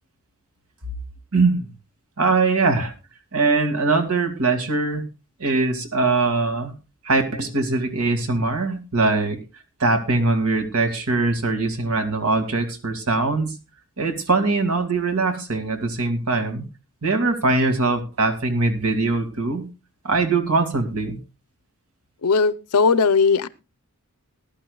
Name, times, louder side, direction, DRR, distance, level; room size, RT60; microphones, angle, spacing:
voice 1, 1.3-1.7 2.2-2.9 3.3-5.0 5.4-6.7 7.0-9.4 9.8-13.5 14.0-16.6 17.0-19.6 20.0-21.2, right 3 dB, 75° right, 2.2 m, -22 dB
voice 2, 22.2-23.5, left 5 dB, 85° left, 0.7 m, -18 dB
19.5 x 11.5 x 2.3 m
head